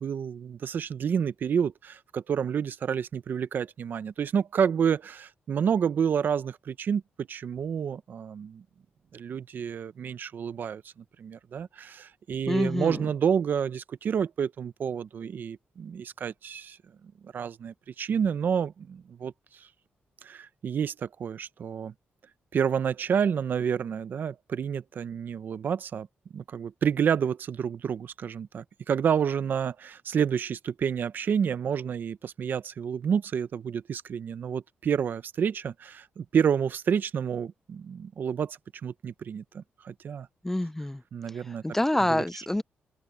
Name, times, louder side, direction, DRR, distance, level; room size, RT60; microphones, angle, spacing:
voice 1, 0.0-8.6 9.1-10.8 11.2-16.8 17.2-19.3 20.2-21.9 22.5-26.1 26.3-40.3 41.1-41.6 42.1-42.2, right 7 dB, 55° right, 0.7 m, -29 dB
voice 2, 12.5-13.1 40.4-41.0 41.3-42.6, left 1 dB, 10° left, 0.5 m, -27 dB
open air
cardioid pair, 125°, 4 cm